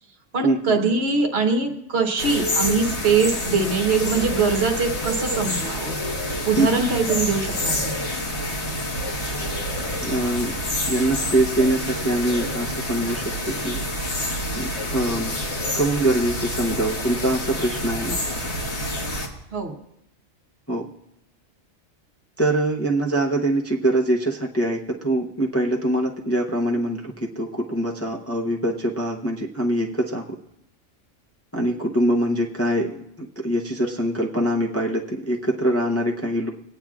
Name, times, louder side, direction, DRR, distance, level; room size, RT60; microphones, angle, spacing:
voice 1, 0.3-6.0 6.4-8.0 19.5-19.8, right 4 dB, 50° right, 4 dB, 1.3 m, -22 dB
sound 1, 2.2-19.3, left 1 dB, 55° left, 1.7 m, -28 dB
voice 2, 10.0-10.6 10.9-13.8 14.6-15.3 15.7-18.2 20.7-20.9 22.4-30.3 31.5-36.5, right 1 dB, 15° left, -1 dB, 0.5 m, -23 dB
25.0 x 8.8 x 2.4 m, 0.82 s
omnidirectional pair, 1.4 m